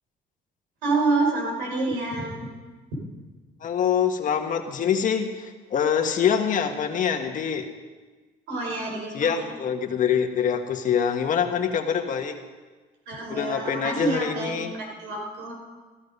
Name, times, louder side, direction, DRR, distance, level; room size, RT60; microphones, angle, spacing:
voice 1, 0.8-2.5 2.9-3.1 8.5-9.4 13.1-15.5, right 3 dB, 90° right, -1 dB, 5.4 m, -28 dB
voice 2, 3.6-7.7 9.1-12.4 13.3-14.7, left 7 dB, 50° left, 5 dB, 1.5 m, -25 dB
15.5 x 14.0 x 5.5 m, 1.3 s
cardioid pair, 110°, 17 cm